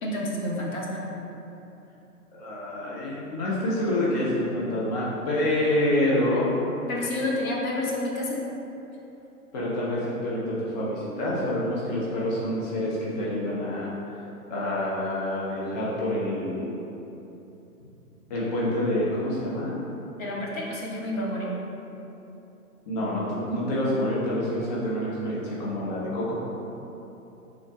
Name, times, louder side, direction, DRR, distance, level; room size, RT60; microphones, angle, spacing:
voice 1, 0.0-1.0 6.9-8.4 20.2-21.5, left 1 dB, 60° left, -3 dB, 1.0 m, -29 dB
voice 2, 2.3-6.5 9.5-13.9 14.5-16.7 18.3-19.8 22.9-26.4, left 1 dB, 30° left, -7 dB, 0.5 m, -27 dB
3.6 x 2.4 x 4.4 m, 3.0 s
figure-of-eight pair, 120°, 46 cm